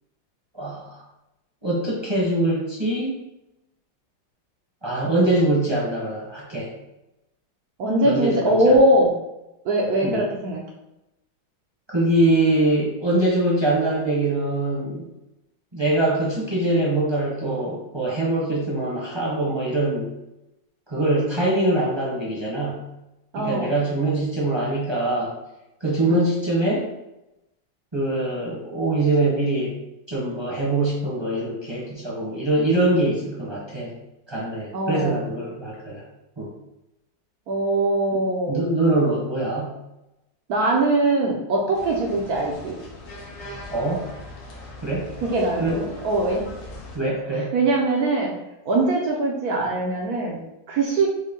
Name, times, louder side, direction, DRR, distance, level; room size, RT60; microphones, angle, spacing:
voice 1, 0.5-1.0 1.6-3.2 4.8-6.7 8.0-8.8 10.0-10.2 11.9-15.1 15.7-20.1 20.9-22.9 23.4-25.3 25.8-26.9 27.9-29.8 30.1-33.9 34.3-36.0 36.4-36.5 38.5-39.8 43.7-44.1 44.8-45.1 45.6-45.9 46.9-47.5, right 2 dB, 20° right, -6 dB, 0.7 m, -23 dB
voice 2, 7.8-9.1 9.6-10.6 23.3-23.7 26.1-26.2 34.7-35.2 37.5-38.6 40.5-42.8 45.2-46.4 47.5-48.3 48.7-50.4 50.7-51.1, right 2 dB, 65° right, -1 dB, 0.9 m, -21 dB
sound 1, 41.7-47.0, left 2 dB, 85° left, 1.9 m, -40 dB
6.4 x 2.2 x 3.7 m, 0.92 s
omnidirectional pair, 2.3 m